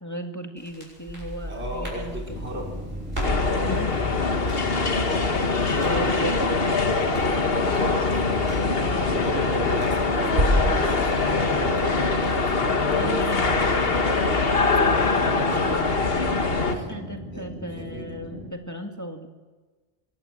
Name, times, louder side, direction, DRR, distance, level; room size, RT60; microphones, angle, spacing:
voice 1, 0.0-2.4 3.6-3.9 5.7-6.6 13.0-14.4 16.7-19.3, equal, 15° left, 3 dB, 1.9 m, -35 dB
Crackle, 0.6-10.8, equal, 65° right, 7.9 m, -32 dB
voice 2, 1.5-2.8 3.4-3.7 4.9-6.6 7.7-13.6 15.0-16.0 16.7-16.9 17.3-17.4 17.8-18.1, equal, 90° right, 0 dB, 5.1 m, -36 dB
sound 1, 2.2-18.5, right 1 dB, 5° right, 5.7 m, -39 dB
sound 2, 3.2-16.8, left 3 dB, 65° left, 1.8 m, -23 dB
24.0 x 17.5 x 7.6 m, 1.3 s
omnidirectional pair, 1.1 m